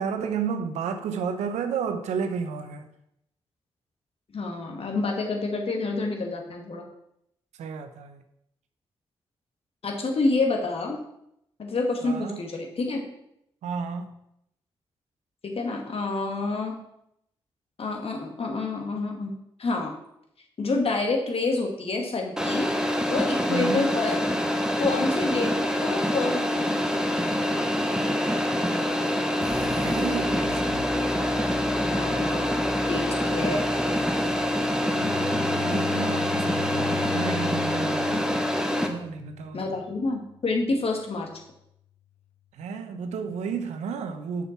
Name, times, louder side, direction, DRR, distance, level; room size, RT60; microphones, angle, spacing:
voice 1, 0.0-2.9 7.6-8.2 12.0-12.4 13.6-14.1 23.5-23.9 29.5-30.9 35.6-38.3 38.7-39.7 42.6-44.5, right 6 dB, 80° right, 0.9 m, -32 dB
voice 2, 4.3-6.9 9.8-11.0 11.6-13.0 15.4-16.8 17.8-19.9 20.6-22.7 23.1-24.2 24.8-26.8 31.9-32.5 32.8-33.7 39.5-41.3, left 3 dB, 55° left, 2.2 m, -28 dB
sound 1, 22.4-38.9, equal, 5° right, 1.7 m, -25 dB
sound 2, 29.4-35.5, left 2 dB, 35° left, 1.0 m, -37 dB
Bowed string instrument, 34.8-40.0, left 10 dB, 75° left, 0.8 m, -37 dB
6.9 x 6.3 x 5.9 m
hypercardioid pair, 40°, 12 cm